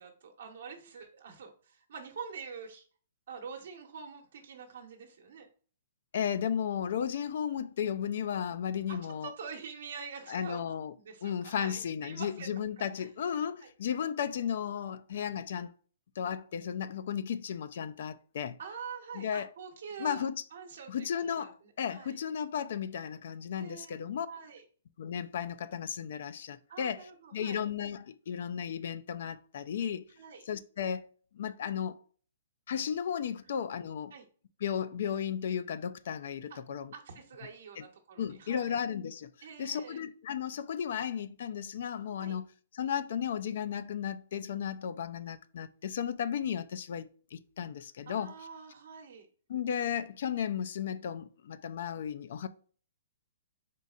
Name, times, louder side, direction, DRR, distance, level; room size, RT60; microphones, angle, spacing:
voice 1, 0.0-2.9 3.3-5.5 8.9-10.7 11.0-13.1 13.6-13.7 18.6-22.2 23.6-24.0 24.2-24.6 26.7-27.6 30.2-30.4 34.1-34.2 36.5-36.6 36.9-38.8 39.4-40.0 42.2-42.4 48.1-49.3, right 6 dB, 65° right, 0.9 m, -46 dB
voice 2, 6.1-9.3 10.3-10.9 11.2-15.7 16.2-18.6 19.1-19.5 20.0-20.4 20.9-24.3 25.0-30.0 30.5-31.1 31.3-32.0 32.7-34.1 34.6-36.9 37.8-37.9 38.2-39.3 39.6-42.4 42.7-48.3 49.5-52.5, left 8 dB, 55° left, 0.4 m, -34 dB
4.1 x 3.8 x 2.4 m
hypercardioid pair, 160°, 0 cm